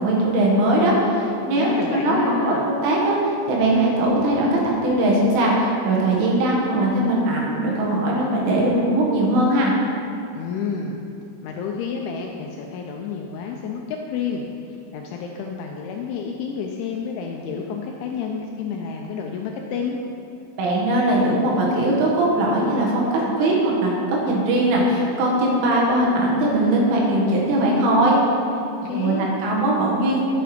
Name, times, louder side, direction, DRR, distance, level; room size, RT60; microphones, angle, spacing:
voice 1, 0.0-9.7 20.6-28.2 28.9-29.1 29.4-30.2, right 1 dB, 70° right, -4 dB, 4.1 m, -20 dB
voice 2, 1.5-2.7 10.4-11.0 11.4-14.5 14.9-20.0 28.9-29.3, left 6 dB, 80° left, 1 dB, 2.8 m, -29 dB
11.5 x 8.0 x 5.0 m, 2.6 s
omnidirectional pair, 6.0 m